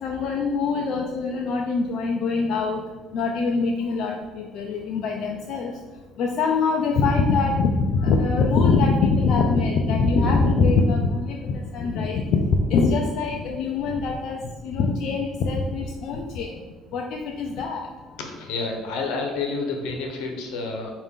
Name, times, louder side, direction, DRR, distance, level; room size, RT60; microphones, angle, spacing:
voice 1, 0.0-2.8 3.1-5.7 6.2-16.6 16.9-17.9, left 4 dB, 65° left, 1 dB, 0.4 m, -23 dB
voice 2, 18.3-20.9, left 3 dB, 85° left, 2 dB, 0.8 m, -29 dB
4.8 x 2.5 x 3.6 m, 1.3 s
cardioid pair, 105°, 0 cm